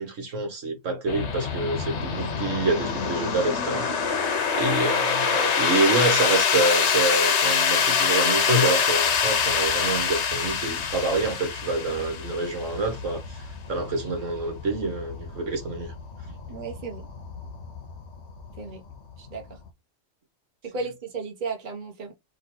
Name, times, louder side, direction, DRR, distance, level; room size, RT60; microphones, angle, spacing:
voice 1, 0.0-15.9, right 2 dB, 70° right, 1.6 m, -27 dB
sound 1, 1.1-19.7, left 6 dB, 60° left, 1.0 m, -26 dB
voice 2, 16.5-17.1 18.6-18.8 19.2-19.6 20.6-22.1, right 4 dB, 40° right, 1.3 m, -34 dB
3.9 x 2.9 x 4.4 m
omnidirectional pair, 1.4 m